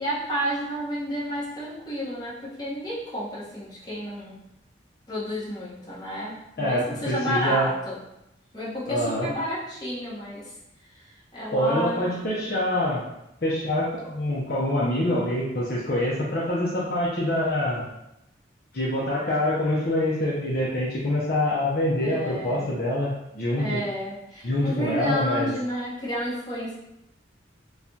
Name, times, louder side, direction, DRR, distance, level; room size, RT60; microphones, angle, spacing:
voice 1, 0.0-4.4 5.1-8.0 8.5-10.5 10.9-12.1 22.0-22.7 23.6-26.7, equal, 20° left, -9 dB, 1.2 m, -31 dB
voice 2, 6.6-7.7 8.9-9.3 11.5-13.0 13.4-17.8 18.7-23.8 24.4-25.5, left 1 dB, 50° left, -6 dB, 0.7 m, -25 dB
4.6 x 2.3 x 2.8 m, 0.86 s
head